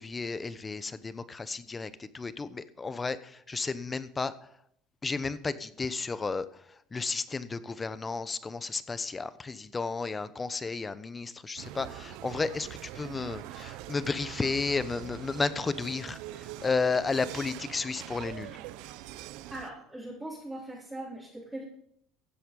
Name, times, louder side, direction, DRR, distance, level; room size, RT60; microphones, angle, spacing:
voice 1, 0.0-4.3 5.0-18.6, left 4 dB, 20° left, 14 dB, 1.0 m, -33 dB
sound 1, 11.6-19.7, right 15 dB, 75° right, 0.7 m, -43 dB
voice 2, 19.5-21.6, right 1 dB, 10° right, -7 dB, 4.0 m, -40 dB
15.5 x 7.9 x 5.4 m, 0.68 s
supercardioid pair, 110°, 0 cm